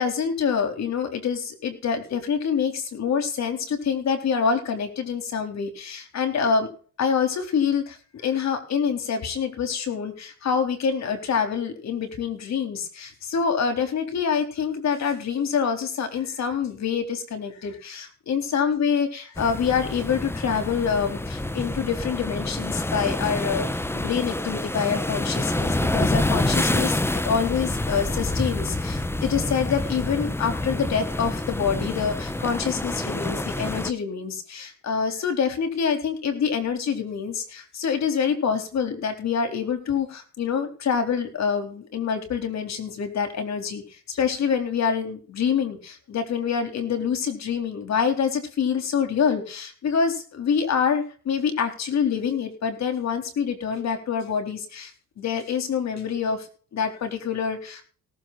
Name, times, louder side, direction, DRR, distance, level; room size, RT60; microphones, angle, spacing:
voice 1, 0.0-6.7 7.0-54.9 55.2-57.8, left 6 dB, 60° left, 6 dB, 4.0 m, -26 dB
sound 1, 19.4-33.9, left 1 dB, 10° left, 1.0 m, -27 dB
18.5 x 7.5 x 4.3 m, 0.39 s
cardioid pair, 90°, 30 cm